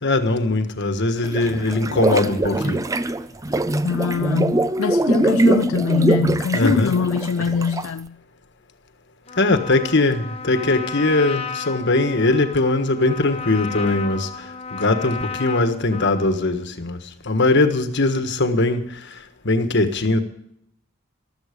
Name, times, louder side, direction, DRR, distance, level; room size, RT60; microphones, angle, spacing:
voice 1, 0.0-2.8 6.5-6.9 9.4-20.2, left 2 dB, 55° left, 1.5 m, -21 dB
sound 1, 1.2-8.0, right 2 dB, 15° right, 0.5 m, -22 dB
voice 2, 3.8-8.2, left 5 dB, 75° left, 0.4 m, -22 dB
Trumpet, 9.3-16.4, left 5 dB, 30° left, 1.1 m, -33 dB
15.0 x 12.5 x 5.2 m
head